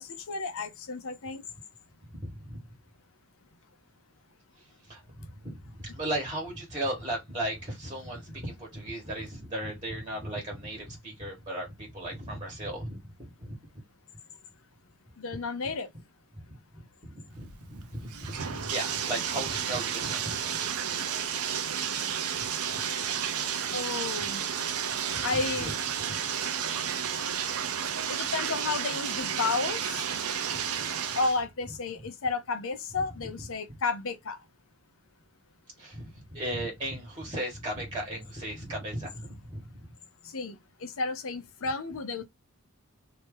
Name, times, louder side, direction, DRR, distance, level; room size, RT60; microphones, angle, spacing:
voice 1, 0.0-1.4 15.2-15.9 23.7-24.4 25.2-25.7 28.1-30.0 31.2-34.4 40.3-42.2, left 4 dB, 65° left, 0.7 m, -32 dB
voice 2, 2.2-2.6 4.9-13.6 16.7-20.7 22.4-22.5 25.1-25.7 35.8-39.7, right 1 dB, 20° right, 1.6 m, -36 dB
Bathtub (filling or washing), 17.4-31.4, right 8 dB, 70° right, 0.6 m, -32 dB
2.8 x 2.8 x 3.6 m
head